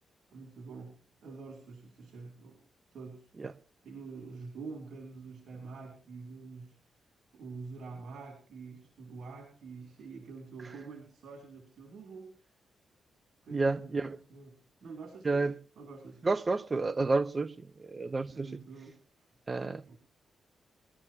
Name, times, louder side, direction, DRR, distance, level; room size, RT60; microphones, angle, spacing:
voice 1, 0.3-2.6 2.9-3.3 3.8-6.8 7.3-12.5 13.4-16.2 18.3-19.3 19.9-20.0, right 4 dB, 75° right, 3.1 m, -47 dB
voice 2, 13.5-14.2 15.2-15.5 16.2-18.5 19.5-20.0, right 3 dB, 35° right, 0.8 m, -30 dB
21.0 x 12.5 x 2.9 m
cardioid pair, 75°, 0 cm